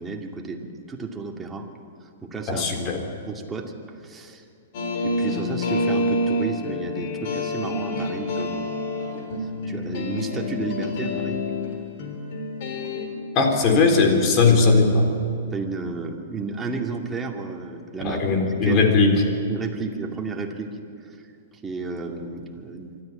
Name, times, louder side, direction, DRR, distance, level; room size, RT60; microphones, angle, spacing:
voice 1, 0.0-1.7 2.0-2.9 3.2-4.4 5.0-8.8 9.4-11.4 15.5-18.2 18.6-18.8 19.5-21.2 21.6-22.9, right 4 dB, 15° right, 1 dB, 2.5 m, -32 dB
voice 2, 2.5-3.0 13.3-15.1 18.0-19.2, left 3 dB, 40° left, 3 dB, 3.9 m, -18 dB
sound 1, 4.7-13.1, left 1 dB, 55° left, 3.8 m, -27 dB
25.0 x 13.5 x 8.9 m, 2.5 s
hypercardioid pair, 115°, 0 cm